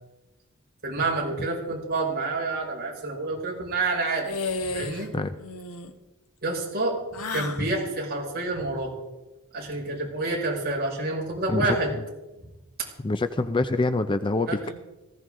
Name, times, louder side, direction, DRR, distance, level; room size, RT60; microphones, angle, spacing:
voice 1, 0.8-4.3 4.7-5.1 6.4-7.0 7.3-9.0 9.5-11.9 14.5-14.7, right 2 dB, 45° right, -3 dB, 5.5 m, -28 dB
sound 1, 4.2-5.1 5.4-5.9 7.1-7.6, left 3 dB, 80° left, 1.4 m, -32 dB
voice 2, 13.0-14.7, left 2 dB, 20° left, 11 dB, 0.4 m, -25 dB
19.0 x 16.0 x 3.8 m, 1.1 s
head